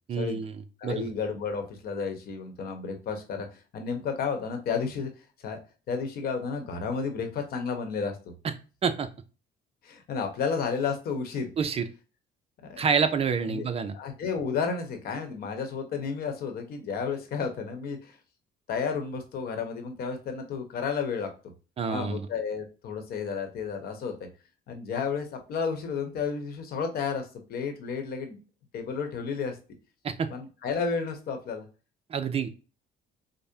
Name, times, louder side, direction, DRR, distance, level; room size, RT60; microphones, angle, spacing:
voice 1, 0.1-0.5 0.8-1.1 8.8-9.1 11.6-11.9 12.8-13.9 21.8-22.3 30.0-30.3 32.1-32.5, right 6 dB, 35° right, 10 dB, 0.5 m, -27 dB
voice 2, 0.8-5.1 5.4-5.6 5.9-8.2 9.8-11.5 12.6-12.8 13.5-13.7 13.9-18.2 18.7-21.3 21.9-24.3 24.7-28.4 28.7-29.6 30.3-31.7, left 5 dB, 65° left, 6 dB, 1.0 m, -32 dB
5.2 x 2.1 x 2.7 m, 0.33 s
cardioid pair, 110°, 17 cm